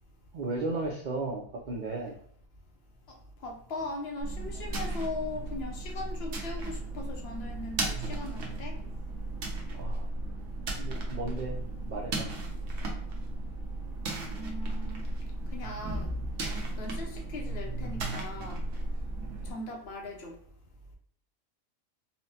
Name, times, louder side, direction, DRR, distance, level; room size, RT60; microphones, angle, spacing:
voice 1, 0.3-2.1 9.7-10.1 10.8-11.6 11.9-12.3, right 2 dB, 85° right, -1 dB, 0.4 m, -35 dB
voice 2, 3.4-8.8 14.3-15.0 15.5-16.1 16.8-18.7 19.4-20.4, left 2 dB, 60° left, 1 dB, 0.8 m, -39 dB
sound 1, 4.2-19.5, right 2 dB, 60° right, 0.9 m, -35 dB
4.2 x 2.0 x 2.7 m, 0.63 s
omnidirectional pair, 1.4 m